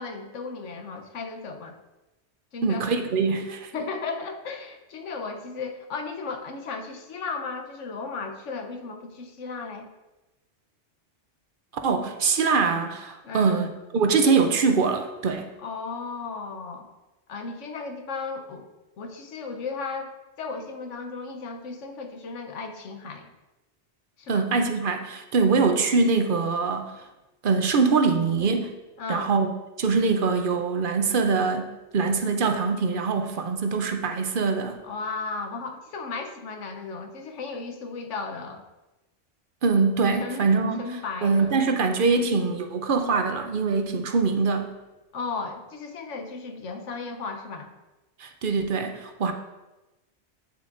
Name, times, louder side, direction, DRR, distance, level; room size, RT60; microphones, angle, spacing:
voice 1, 0.0-1.8 2.5-2.9 3.7-9.9 13.2-13.6 15.6-16.9 17.3-18.7 19.0-20.1 20.4-23.3 24.2-24.4 29.0-29.3 34.8-38.6 40.2-40.5 40.8-41.6 45.1-47.7, left 4 dB, 85° left, 5 dB, 1.2 m, -35 dB
voice 2, 2.6-3.7 11.8-15.5 24.3-26.9 27.4-28.7 29.1-29.5 29.8-34.8 39.6-40.9 41.2-44.7 48.2-49.3, right 4 dB, 55° right, 6 dB, 0.7 m, -23 dB
9.0 x 7.1 x 2.6 m, 1.0 s
omnidirectional pair, 1.2 m